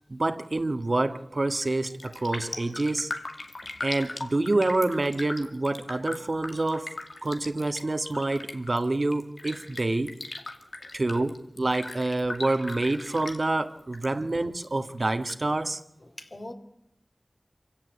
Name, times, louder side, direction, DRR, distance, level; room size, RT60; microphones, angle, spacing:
voice 1, 0.1-3.1 3.8-6.9 7.2-10.1 10.9-15.8, right 2 dB, 60° right, 1.8 m, -27 dB
Raindrop, 1.5-1.7 2.0-14.1 14.3-15.3 15.7-15.8, left 2 dB, 85° left, 2.4 m, -39 dB
voice 2, 14.0-14.4 16.0-16.5, left 1 dB, 45° left, 3.5 m, -44 dB
27.0 x 16.5 x 8.3 m
wide cardioid pair, 40°, 0 cm